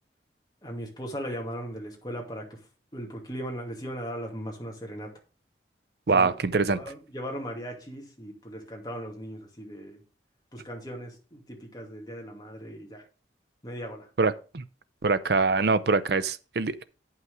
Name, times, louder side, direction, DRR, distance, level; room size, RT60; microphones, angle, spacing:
voice 1, 0.6-2.6 2.9-5.1 6.1-10.0 10.5-13.0 13.6-14.1, equal, 20° left, 2.3 m, -38 dB
voice 2, 6.1-6.8 14.2-14.6 15.0-16.8, right 4 dB, 60° right, 0.6 m, -24 dB
9.4 x 5.8 x 4.9 m
head